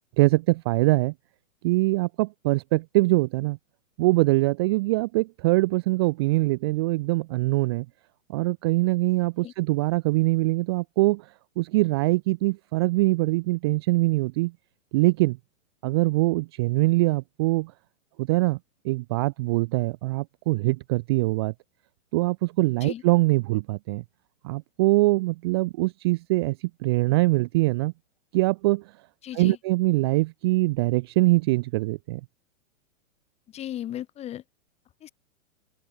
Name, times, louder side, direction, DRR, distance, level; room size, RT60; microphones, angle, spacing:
voice 1, 0.2-1.1 1.6-3.6 4.0-7.9 8.3-11.3 11.6-14.5 14.9-15.4 15.8-17.7 18.2-18.6 18.8-21.5 22.1-24.0 24.4-27.9 28.3-28.8 29.3-32.2, right 22 dB, 20° right, 0.6 m, -23 dB
voice 2, 29.2-29.6 33.5-34.4 35.0-35.1, left 12 dB, 15° left, 1.9 m, -36 dB
open air
hypercardioid pair, 160°, 40 cm